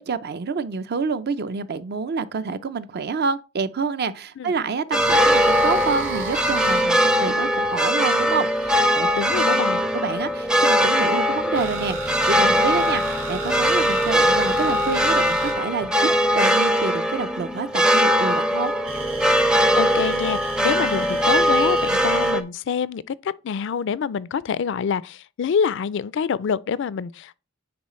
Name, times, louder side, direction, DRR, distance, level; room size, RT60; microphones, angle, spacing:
voice 1, 0.0-9.1 9.9-16.1 16.3-18.7, right 4 dB, 55° right, 0.5 m, -28 dB
sound 1, 4.9-22.4, equal, 5° right, 0.5 m, -21 dB
sound 2, 5.0-8.4 9.5-16.9 18.8-22.3, right 3 dB, 85° right, 2.5 m, -34 dB
voice 2, 9.1-9.8 19.8-23.1 23.4-27.3, left 6 dB, 65° left, 0.4 m, -26 dB
9.5 x 4.0 x 3.1 m
head